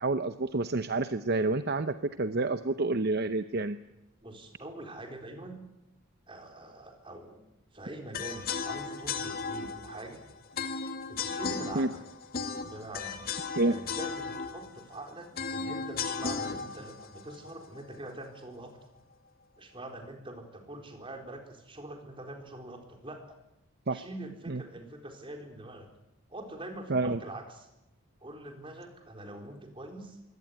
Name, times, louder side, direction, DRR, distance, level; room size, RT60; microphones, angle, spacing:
voice 1, 0.0-3.8 11.8-11.9 13.6-13.8 23.9-24.0 24.5-24.6 26.9-27.2, right 2 dB, 50° right, 11 dB, 0.8 m, -28 dB
voice 2, 4.2-5.6 6.3-7.4 7.7-10.3 11.1-12.0 12.7-13.2 13.7-18.8 19.6-23.4 23.9-25.9 26.3-27.7 28.2-30.4, right 1 dB, 25° right, 4 dB, 4.2 m, -44 dB
sound 1, 8.1-18.2, left 5 dB, 45° left, 2.1 m, -36 dB
23.5 x 17.5 x 9.4 m, 0.90 s
head